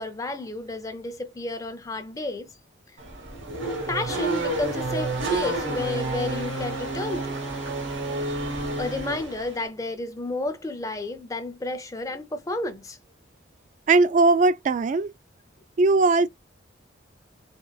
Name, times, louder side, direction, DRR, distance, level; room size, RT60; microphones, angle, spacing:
voice 1, 0.0-2.5 3.9-7.4 8.8-13.0, left 2 dB, 20° left, 0.6 m, -31 dB
Race car auto racing / Accelerating revving vroom, 3.0-9.7, right 2 dB, 90° right, 1.2 m, -30 dB
voice 2, 13.9-15.1 15.8-16.3, right 3 dB, 40° right, 0.3 m, -19 dB
3.7 x 2.3 x 2.3 m
head